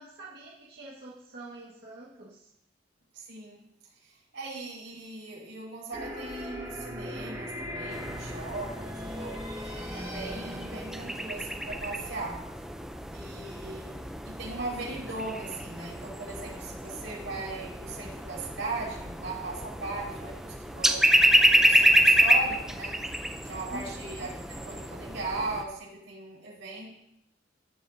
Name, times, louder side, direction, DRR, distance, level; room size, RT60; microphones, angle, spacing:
voice 1, 0.0-2.5 23.7-24.0, right 2 dB, 55° right, -6 dB, 1.7 m, -45 dB
voice 2, 3.1-3.6 4.3-9.4 9.9-12.4 13.1-21.0 21.5-22.9 23.4-26.9, right 3 dB, 85° right, -4 dB, 4.8 m, -38 dB
sound 1, 5.9-12.7, equal, 20° right, 1.6 m, -40 dB
sound 2, 7.9-25.6, equal, 5° right, 0.5 m, -28 dB
17.0 x 8.2 x 2.7 m, 0.80 s
head